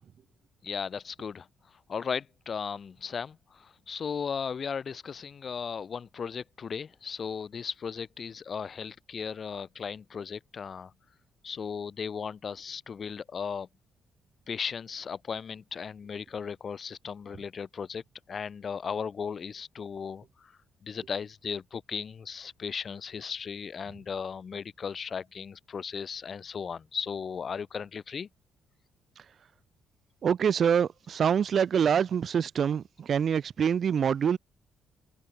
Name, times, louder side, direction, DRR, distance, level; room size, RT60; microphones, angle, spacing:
voice 1, 0.6-10.9 11.4-13.7 14.5-18.0 18.3-20.5 20.8-28.3, left 6 dB, 45° left, 4.2 m, -36 dB
voice 2, 30.2-34.4, right 7 dB, 55° right, 0.8 m, -25 dB
cardioid pair, 90°, 0 cm